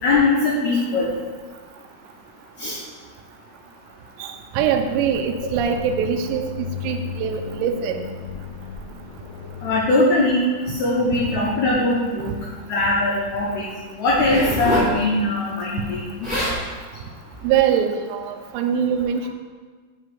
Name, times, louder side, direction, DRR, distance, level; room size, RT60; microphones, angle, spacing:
voice 1, 0.0-1.1 2.6-2.8 9.6-12.4 12.7-13.7 14.0-16.3, left 2 dB, 75° left, -5 dB, 1.7 m, -21 dB
voice 2, 4.2-6.5 6.8-8.0 17.4-19.3, right 8 dB, 80° right, 5 dB, 2.0 m, -23 dB
sound 1, 4.6-9.7, left 7 dB, 40° left, 2.4 m, -35 dB
Zipper (clothing), 14.1-14.9 15.9-16.0 16.2-16.6 17.3-17.5, equal, 20° left, 1.2 m, -25 dB
5.6 x 4.8 x 5.8 m, 1.4 s
omnidirectional pair, 4.5 m